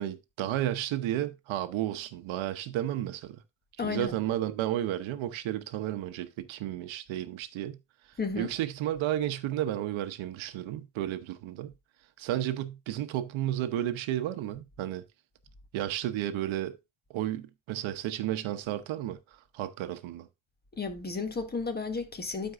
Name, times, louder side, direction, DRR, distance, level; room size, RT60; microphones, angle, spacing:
voice 1, 0.0-3.4 3.8-7.8 8.4-11.7 12.2-15.0 15.7-16.8 17.1-20.3, right 12 dB, 85° right, 1.0 m, -32 dB
voice 2, 3.8-4.1 8.2-8.5 20.7-22.5, left 4 dB, 20° left, 1.4 m, -33 dB
13.0 x 4.7 x 2.5 m
cardioid pair, 120°, 46 cm